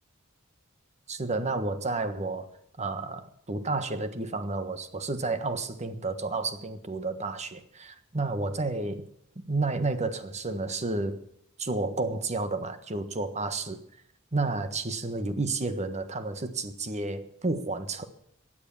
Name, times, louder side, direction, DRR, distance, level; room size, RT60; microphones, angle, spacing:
voice 1, 1.1-2.5 2.8-9.0 9.5-11.2 11.6-13.8 14.3-18.0, right 3 dB, 35° right, 10 dB, 1.4 m, -31 dB
16.0 x 10.0 x 7.0 m, 0.71 s
head